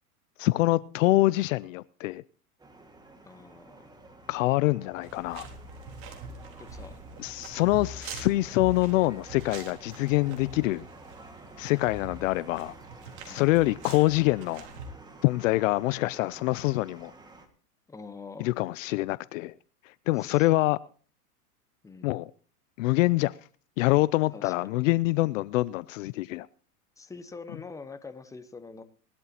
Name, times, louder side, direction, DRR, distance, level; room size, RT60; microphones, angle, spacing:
voice 1, 0.4-2.2 4.3-5.5 7.2-10.8 11.6-12.7 13.3-14.7 15.2-17.1 18.4-19.5 20.1-20.8 22.0-22.3 22.8-23.3 23.8-26.5, left 19 dB, 60° left, 0.5 m, -25 dB
sound 1, 2.6-17.5, right 2 dB, 10° right, 1.8 m, -50 dB
voice 2, 3.2-3.9 6.6-7.0 8.2-8.4 13.3-13.5 17.9-18.5 20.1-20.5 21.8-22.1 24.3-24.7 27.0-28.8, left 4 dB, 5° left, 0.9 m, -45 dB
sound 2, 5.0-14.9, right 3 dB, 60° right, 3.8 m, -44 dB
19.0 x 12.0 x 2.9 m
hypercardioid pair, 125°, 46 cm